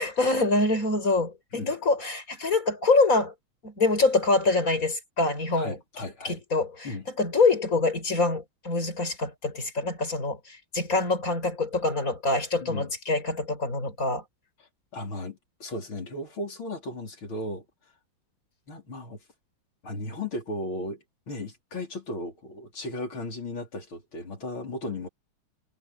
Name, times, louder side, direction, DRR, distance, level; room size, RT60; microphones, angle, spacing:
voice 1, 0.0-3.3 3.6-5.8 6.2-6.9 7.2-14.2, left 3 dB, 40° left, 6.7 m, -25 dB
voice 2, 5.6-6.4 6.8-7.1 12.6-12.9 14.9-17.6 18.7-19.2 19.8-25.1, left 2 dB, 80° left, 5.4 m, -36 dB
omnidirectional pair, 2.2 m